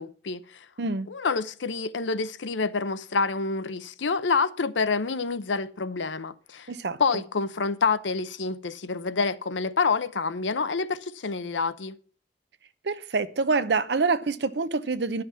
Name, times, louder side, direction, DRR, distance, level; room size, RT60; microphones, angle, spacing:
voice 1, 0.0-0.7 1.1-6.7 7.0-12.0, left 4 dB, 90° left, 0.7 m, -27 dB
voice 2, 6.7-7.0 12.8-15.2, right 4 dB, 70° right, 0.7 m, -26 dB
11.5 x 5.9 x 7.3 m
head